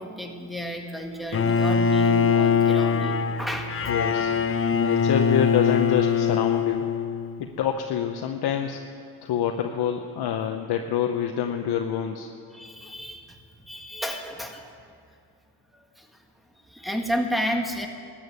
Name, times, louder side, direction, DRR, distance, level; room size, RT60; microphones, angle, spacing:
voice 1, 0.0-4.0 12.5-13.4 13.6-14.7 15.7-16.1 16.6-17.9, equal, ahead, 3 dB, 1.8 m, -32 dB
Bowed string instrument, 1.3-7.4, left 6 dB, 35° left, 0.7 m, -22 dB
voice 2, 3.9-4.3 4.7-6.9 7.6-8.8 9.2-12.3, left 9 dB, 70° left, 5 dB, 0.9 m, -26 dB
13.5 x 8.9 x 9.4 m, 2.4 s
cardioid pair, 80°, 40 cm